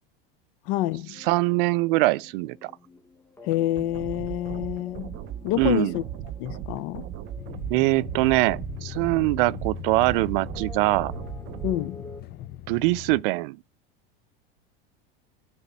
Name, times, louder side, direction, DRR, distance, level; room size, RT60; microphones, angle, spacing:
voice 1, 0.7-1.2 3.4-6.0 6.4-7.1 11.6-12.1, left 15 dB, 55° left, 0.8 m, -28 dB
sound 1, 1.1-12.2, left 3 dB, 10° left, 1.5 m, -49 dB
voice 2, 1.2-2.7 5.6-5.9 7.7-11.1 12.7-13.6, right 21 dB, 60° right, 0.5 m, -23 dB
sound 2, 3.8-11.8, right 11 dB, 40° right, 0.9 m, -37 dB
sound 3, 7.4-13.2, left 14 dB, 35° left, 0.5 m, -39 dB
9.7 x 4.2 x 7.3 m
supercardioid pair, 120°, 30 cm